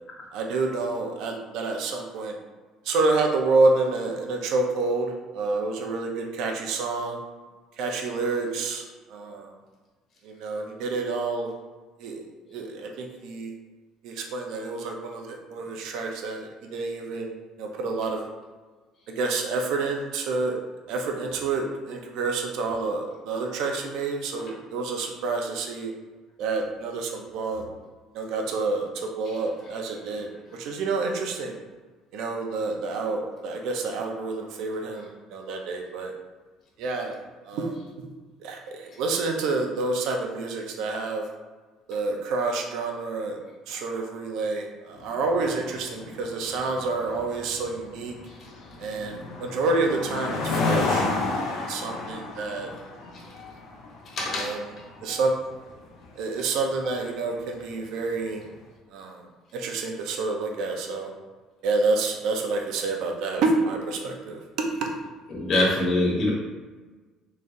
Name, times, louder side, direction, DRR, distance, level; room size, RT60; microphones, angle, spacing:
voice 1, 0.3-2.4 2.8-7.2 7.8-9.5 10.2-11.5 12.0-13.5 14.0-18.3 19.1-20.6 20.9-25.9 26.4-27.7 28.1-31.6 32.1-36.1 36.8-37.2 37.4-38.1 38.4-41.3 41.9-43.4 43.7-48.1 48.8-52.7 54.3-54.6 55.0-55.3 56.2-58.4 58.9-59.3 59.5-61.1 61.6-64.9, right 3 dB, 70° right, 2 dB, 0.6 m, -28 dB
sound 1, 44.9-58.5, left 3 dB, 65° left, 0.6 m, -33 dB
voice 2, 54.1-54.6 65.3-66.3, left 1 dB, 40° left, -5 dB, 1.1 m, -24 dB
3.9 x 3.2 x 2.6 m, 1.3 s
cardioid pair, 120°, 0 cm